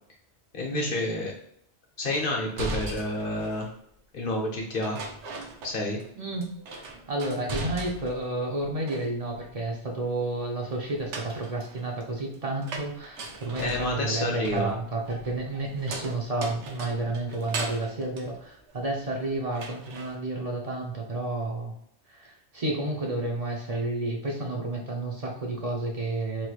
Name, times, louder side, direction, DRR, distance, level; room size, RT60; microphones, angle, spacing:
voice 1, 0.5-1.3 2.0-3.7 4.1-5.0 5.6-6.0 13.6-14.7, left 2 dB, 55° left, 0 dB, 0.9 m, -29 dB
sound 1, 2.1-3.8 4.8-6.1 6.4-8.3 8.6-9.4 10.8-19.1 19.5-20.1, right 2 dB, 80° right, 0.9 m, -39 dB
voice 2, 6.2-21.7 22.1-26.5, right 2 dB, 40° right, 0 dB, 0.6 m, -31 dB
3.1 x 3.0 x 2.3 m, 0.72 s
omnidirectional pair, 1.2 m